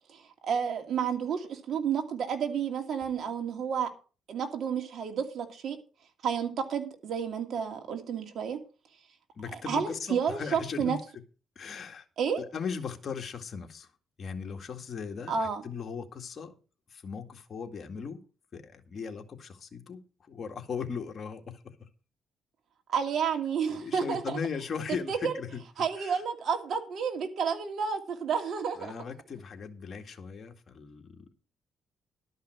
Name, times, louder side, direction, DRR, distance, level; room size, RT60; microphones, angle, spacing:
voice 1, 0.1-3.9 4.3-5.8 6.2-8.6 9.7-11.0 12.2-12.4 15.3-15.6 22.9-24.4 25.1-25.3 25.8-28.9, right 7 dB, 65° right, 2.6 m, -31 dB
voice 2, 9.3-11.0 11.6-12.1 12.4-13.9 14.2-16.5 16.9-18.2 18.5-21.6 23.7-25.6 26.0-26.2 28.8-31.3, left 6 dB, 45° left, 2.0 m, -38 dB
12.5 x 5.6 x 7.8 m
cardioid pair, 90°, 0 cm